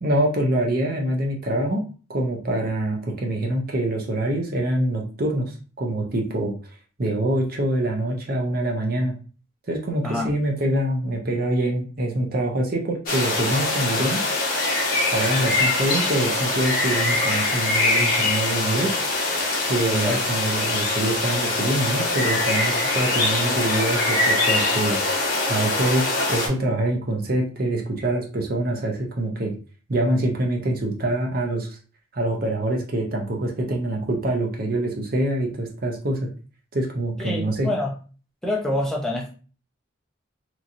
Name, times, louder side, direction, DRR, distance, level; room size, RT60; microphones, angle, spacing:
voice 1, 0.0-6.6 7.0-9.2 9.7-14.2 15.1-18.9 19.6-25.0 25.5-29.5 29.9-31.8 32.1-36.3 36.7-37.7, right 1 dB, 45° right, 1 dB, 0.6 m, -25 dB
sound 1, 13.1-26.5, left 2 dB, 45° left, 1.0 m, -23 dB
voice 2, 37.2-37.9 38.4-39.3, left 1 dB, 5° left, -3 dB, 0.5 m, -26 dB
3.0 x 2.6 x 2.5 m, 0.38 s
head